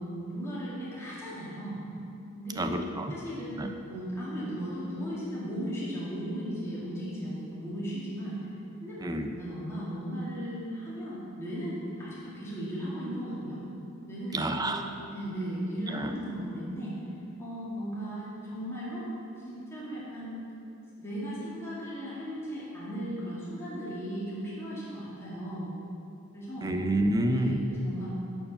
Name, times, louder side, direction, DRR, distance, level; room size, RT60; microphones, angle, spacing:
voice 1, 0.0-1.8 2.3-2.7 3.1-3.6 3.9-8.4 8.8-13.6 14.1-14.8 15.1-17.0 17.4-19.1 19.4-20.4 21.0-25.7 26.3-26.7 27.3-28.2, equal, 10° left, -9 dB, 2.1 m, -36 dB
voice 2, 2.6-3.1 3.6-3.7 9.0-9.3 14.3-14.8 15.9-16.1 26.6-27.6, right 1 dB, 20° right, 6 dB, 0.5 m, -28 dB
11.0 x 4.6 x 6.8 m, 2.8 s
head